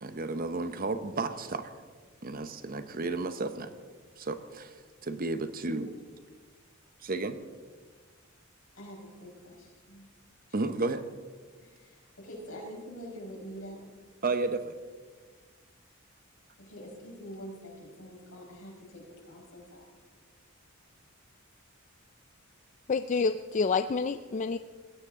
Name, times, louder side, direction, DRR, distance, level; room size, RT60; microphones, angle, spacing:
voice 1, 0.0-1.7 2.2-3.7 4.2-4.8 5.0-5.9 7.0-7.4 10.5-11.0 14.2-14.7, right 3 dB, 45° right, 10 dB, 0.9 m, -32 dB
voice 2, 8.7-10.1 11.6-13.8 16.6-20.0, equal, 75° left, -1 dB, 5.0 m, -45 dB
voice 3, 22.9-24.6, left 4 dB, 35° left, 10 dB, 0.4 m, -28 dB
20.0 x 17.0 x 3.7 m, 1.5 s
head